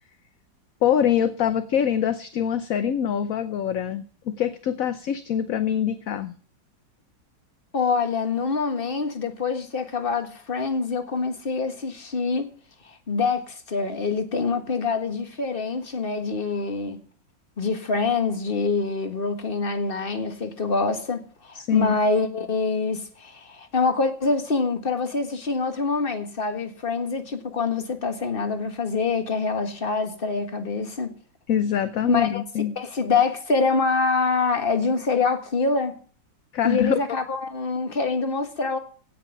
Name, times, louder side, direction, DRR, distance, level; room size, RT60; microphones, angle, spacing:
voice 1, 0.8-6.3 21.5-22.0 31.5-32.7 36.5-37.0, left 9 dB, 60° left, 1.0 m, -24 dB
voice 2, 7.7-12.5 12.8-17.0 17.6-31.1 32.1-32.4 32.7-36.0 36.6-38.8, left 4 dB, 30° left, 1.7 m, -25 dB
17.0 x 6.0 x 8.3 m
omnidirectional pair, 2.0 m